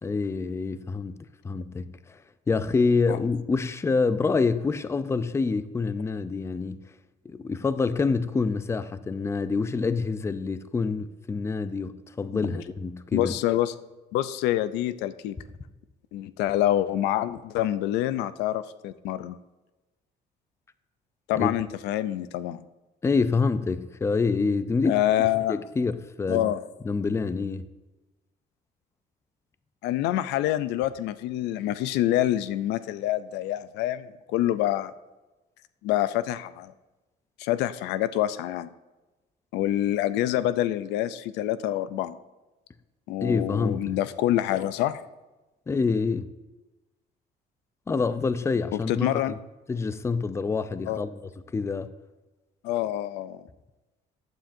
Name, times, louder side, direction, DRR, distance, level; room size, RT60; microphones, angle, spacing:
voice 1, 0.0-1.2 1.4-2.2 2.5-6.8 7.3-13.3 21.4-21.5 23.0-25.0 25.5-26.5 26.8-27.6 43.2-44.0 45.7-46.3 47.9-49.4 49.7-51.2 51.5-51.9, left 4 dB, 15° left, 0.4 m, -26 dB
voice 2, 12.3-12.6 13.1-13.7 14.1-15.4 16.1-19.4 21.3-22.6 24.8-25.6 26.3-26.6 29.8-34.9 35.8-36.7 37.4-38.7 39.5-42.2 43.1-45.0 48.7-49.3 50.9-51.0 52.6-53.4, left 13 dB, 90° left, 0.4 m, -26 dB
14.5 x 9.0 x 2.6 m
cardioid pair, 110°, 17 cm